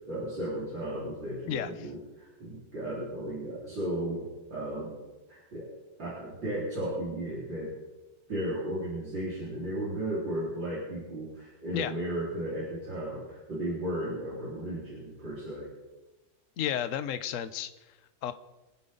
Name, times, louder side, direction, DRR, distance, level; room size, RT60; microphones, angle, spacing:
voice 1, 0.1-4.9 5.3-5.7 6.0-7.7 8.3-15.7, right 1 dB, 75° right, -9 dB, 5.3 m, -35 dB
voice 2, 1.5-1.9 11.7-11.9 16.6-17.7 18.2-18.3, left 10 dB, 55° left, 11 dB, 1.0 m, -32 dB
27.5 x 9.7 x 4.0 m, 1.1 s
omnidirectional pair, 2.0 m